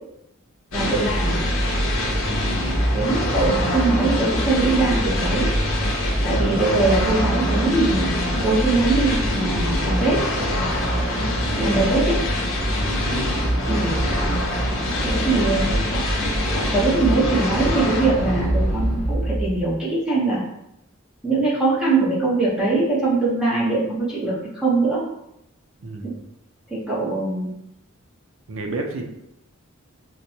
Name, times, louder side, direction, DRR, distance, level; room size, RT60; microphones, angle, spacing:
sound 1, 0.7-19.7, equal, 75° left, 0.8 m, -23 dB
voice 1, 0.7-1.3 2.9-5.5 6.2-8.1 8.4-10.2 11.6-12.2 13.7-13.9 15.0-16.0 16.5-20.4 21.2-25.0 26.0-26.1 26.7-27.5, right 3 dB, 5° right, -8 dB, 0.8 m, -22 dB
voice 2, 3.4-3.8 6.3-6.9 11.5-11.9 13.0-13.3 15.6-15.9 25.8-26.2 28.5-29.1, right 2 dB, 70° right, 3 dB, 0.5 m, -32 dB
4.4 x 2.2 x 2.7 m, 0.84 s
head